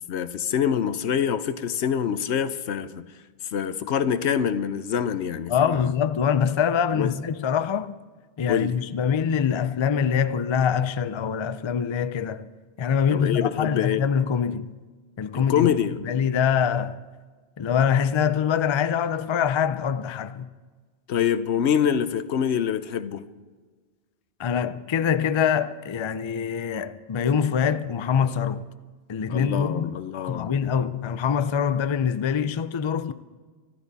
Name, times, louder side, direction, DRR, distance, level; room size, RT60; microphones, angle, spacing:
voice 1, 0.1-3.0 3.5-5.9 6.9-7.1 8.5-8.7 13.1-14.1 15.5-16.0 21.1-23.2 29.3-30.5, left 8 dB, 80° left, 1.0 m, -25 dB
voice 2, 5.5-7.9 8.4-12.5 12.8-14.7 15.2-15.7 16.0-17.0 17.6-20.5 24.4-28.7 29.1-30.0 30.3-33.1, left 7 dB, 40° left, 0.4 m, -24 dB
25.0 x 12.0 x 4.1 m
omnidirectional pair, 1.1 m